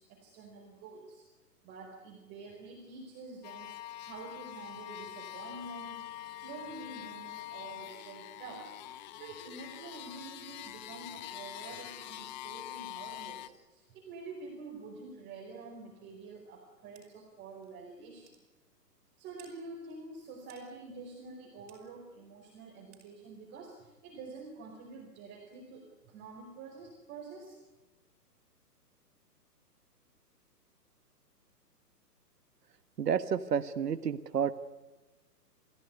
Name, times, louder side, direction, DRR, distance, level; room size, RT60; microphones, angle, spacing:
voice 1, 0.1-1.2 1.6-3.7 4.0-6.1 6.4-18.3 19.2-27.6, right 3 dB, 20° right, 0 dB, 4.8 m, -47 dB
sound 1, 3.4-13.5, left 13 dB, 25° left, 1.1 m, -45 dB
sound 2, 17.0-17.1 17.6-17.7 18.3-18.4 19.4-19.5 20.5-20.7 21.7-21.8 22.9-23.1, right 9 dB, 40° right, 6.5 m, -57 dB
voice 2, 33.0-34.5, right 7 dB, 75° right, 11 dB, 1.5 m, -30 dB
29.0 x 16.0 x 9.6 m, 1.2 s
hypercardioid pair, 150°, 48 cm